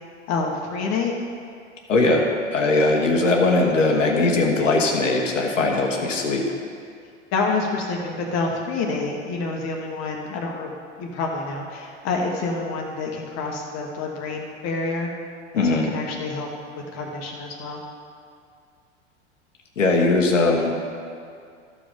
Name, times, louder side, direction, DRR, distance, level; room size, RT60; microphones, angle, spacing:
voice 1, 0.3-1.1 7.3-10.7 11.0-15.1 15.5-16.5 16.9-17.8, left 3 dB, 45° left, 0 dB, 1.4 m, -27 dB
voice 2, 1.9-6.5 15.5-15.9 19.8-20.7, left 2 dB, 85° left, 0 dB, 1.3 m, -20 dB
13.5 x 5.2 x 5.3 m, 2.3 s
hypercardioid pair, 90°, 37 cm